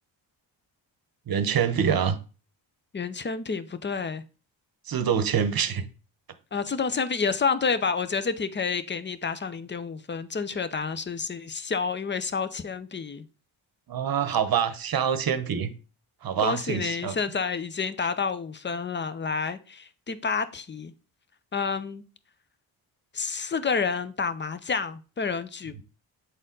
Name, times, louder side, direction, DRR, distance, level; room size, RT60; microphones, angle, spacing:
voice 1, 1.3-2.2 4.9-5.9 13.9-15.7 16.2-17.2, right 7 dB, 50° right, 0.9 m, -25 dB
voice 2, 2.9-4.2 6.5-13.2 16.4-20.9 21.5-22.0 23.1-25.8, left 5 dB, 25° left, 0.7 m, -29 dB
7.9 x 4.1 x 3.8 m
cardioid pair, 70°, 47 cm